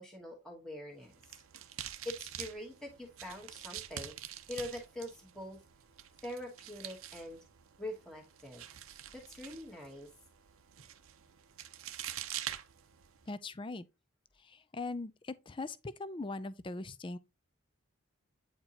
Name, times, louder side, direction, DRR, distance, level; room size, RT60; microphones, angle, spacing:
voice 1, 0.0-1.4 2.0-5.6 6.2-7.4 7.8-8.6 9.1-10.1, left 1 dB, 5° left, 1.1 m, -44 dB
sound 1, 1.0-13.3, right 11 dB, 85° right, 0.7 m, -46 dB
voice 2, 13.3-13.8 14.4-17.2, left 3 dB, 25° left, 0.4 m, -40 dB
8.8 x 4.4 x 2.8 m
head